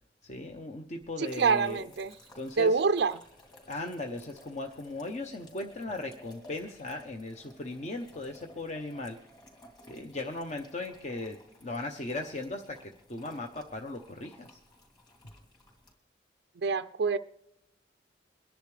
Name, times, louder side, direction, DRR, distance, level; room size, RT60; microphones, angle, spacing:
voice 1, 0.2-1.8 2.3-2.8 3.7-9.2 9.9-14.6, left 2 dB, 40° left, 4 dB, 0.8 m, -38 dB
sound 1, 1.0-15.9, left 1 dB, 25° left, 3.0 m, -57 dB
voice 2, 1.2-2.1 2.6-3.2 16.6-17.2, right 5 dB, 65° right, 10 dB, 0.4 m, -26 dB
23.0 x 10.5 x 3.3 m, 0.84 s
head